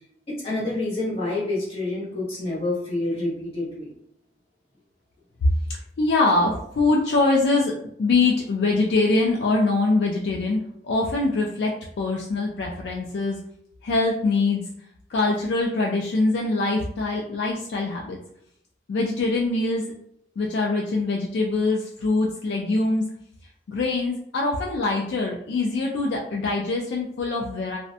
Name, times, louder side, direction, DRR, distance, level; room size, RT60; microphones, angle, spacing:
voice 1, 0.3-3.9, left 2 dB, 35° left, -7 dB, 1.0 m, -28 dB
voice 2, 6.0-13.4 13.8-14.6 15.1-18.2 18.9-19.8 20.4-23.1 23.7-27.8, left 3 dB, 80° left, -1 dB, 0.3 m, -23 dB
2.5 x 2.1 x 2.6 m, 0.70 s
head